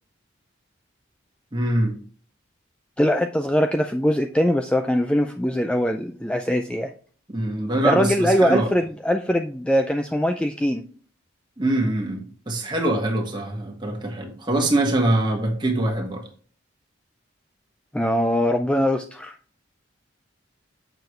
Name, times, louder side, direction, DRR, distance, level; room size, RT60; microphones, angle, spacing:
voice 1, 1.5-1.9 7.3-8.7 11.6-16.2, right 1 dB, 20° right, 1.6 m, -23 dB
voice 2, 3.0-6.9 7.8-10.8 17.9-19.3, equal, 5° left, 0.3 m, -22 dB
8.0 x 6.7 x 3.2 m
head